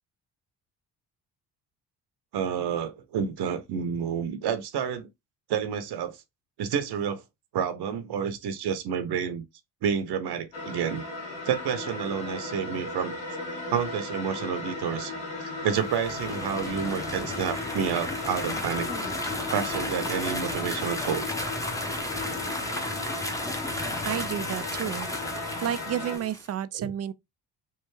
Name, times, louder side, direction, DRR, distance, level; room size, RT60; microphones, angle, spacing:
voice 1, 2.3-5.1 5.5-6.2 6.6-7.2 7.5-9.4 9.8-11.0 11.5-13.1 13.7-15.1 15.4-18.9 19.5-21.3 26.7-26.9, right 7 dB, 60° right, 0.8 m, -29 dB
sound 1, 10.5-26.2, left 3 dB, 80° left, 1.8 m, -36 dB
sound 2, 15.7-26.5, left 1 dB, 5° left, 0.8 m, -34 dB
voice 2, 24.0-25.1 25.6-27.1, right 10 dB, 35° right, 0.4 m, -31 dB
3.3 x 2.5 x 3.2 m
supercardioid pair, 65°, 44 cm